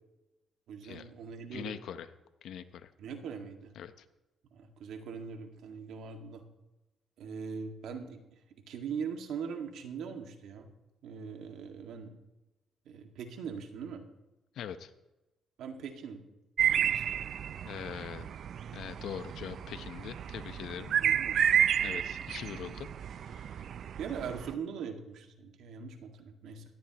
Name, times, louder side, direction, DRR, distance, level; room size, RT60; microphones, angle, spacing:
voice 1, 0.7-1.8 3.0-3.7 4.5-6.4 7.2-8.2 8.7-10.7 11.0-12.2 12.9-14.0 15.6-16.2 16.7-17.3 21.0-21.9 24.0-26.6, right 6 dB, 80° right, 4 dB, 2.0 m, -41 dB
voice 2, 1.5-2.1 2.4-2.9 3.8-4.0 14.5-14.9 17.6-18.3 18.7-20.9 21.8-22.9 23.2-23.7, left 9 dB, 75° left, 11 dB, 0.8 m, -42 dB
sound 1, 16.6-24.5, right 9 dB, 60° right, 0.5 m, -31 dB
17.5 x 14.0 x 3.0 m, 1.0 s
cardioid pair, 90°, 0 cm